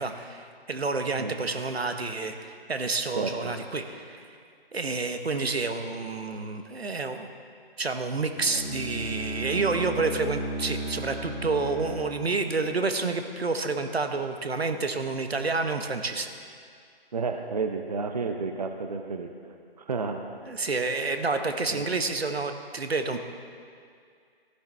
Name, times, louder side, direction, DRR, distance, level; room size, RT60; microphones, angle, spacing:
voice 1, 0.0-4.2 4.7-7.3 7.8-16.3 20.4-23.2, right 3 dB, 80° right, 7 dB, 1.0 m, -29 dB
voice 2, 3.2-3.5 17.1-19.3 19.8-20.2 21.7-21.8, right 4 dB, 40° right, 5 dB, 0.6 m, -31 dB
Bowed string instrument, 8.4-13.3, right 2 dB, ahead, 2.5 m, -35 dB
14.5 x 11.5 x 3.4 m, 2.2 s
figure-of-eight pair, 150°, 31 cm